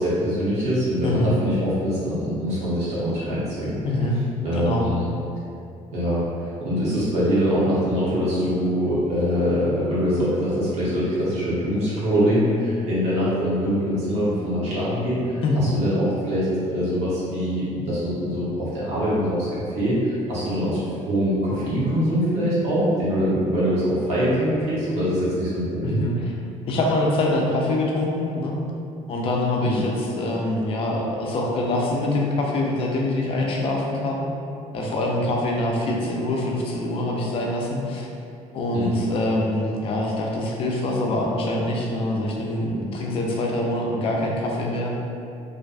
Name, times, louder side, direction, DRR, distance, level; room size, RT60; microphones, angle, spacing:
voice 1, 0.0-3.8 4.4-5.1 5.9-26.0 29.6-29.8 38.7-38.9, equal, 55° right, -10 dB, 0.8 m, -23 dB
voice 2, 1.0-1.4 3.8-4.2 4.5-4.8 15.4-15.6 25.8-26.3 26.7-28.6 29.1-34.2 34.7-38.1 38.5-45.0, left 1 dB, 45° left, -1 dB, 0.4 m, -24 dB
2.4 x 2.2 x 2.4 m, 2.5 s
cardioid pair, 150°, 13 cm